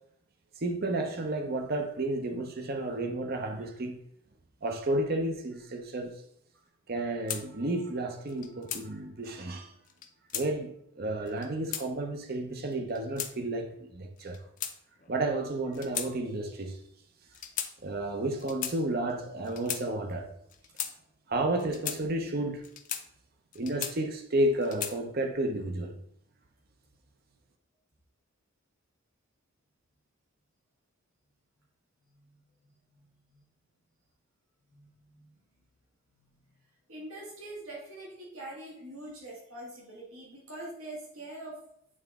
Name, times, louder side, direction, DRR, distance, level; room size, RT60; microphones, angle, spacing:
voice 1, 0.6-4.0 4.6-6.2 6.9-9.7 10.3-14.4 15.1-16.8 17.8-20.3 21.3-22.7 23.5-26.0, right 1 dB, 45° right, 0.6 m, -32 dB
sound 1, 7.3-7.4 8.3-8.8 9.9-10.5 11.3-11.9 12.7-13.3 14.2-15.1 15.7-16.1 16.4-16.6 17.3-17.7 18.4-18.8 19.4-19.8 20.5-20.9 21.6-22.0 22.6-23.0 23.5-24.2 24.6-25.0, left 9 dB, 40° left, 0.5 m, -36 dB
voice 2, 32.1-32.4 32.9-33.4 34.7-35.4 36.2-36.5 36.9-41.6, right 1 dB, 80° right, 2.0 m, -44 dB
8.8 x 3.9 x 3.5 m
head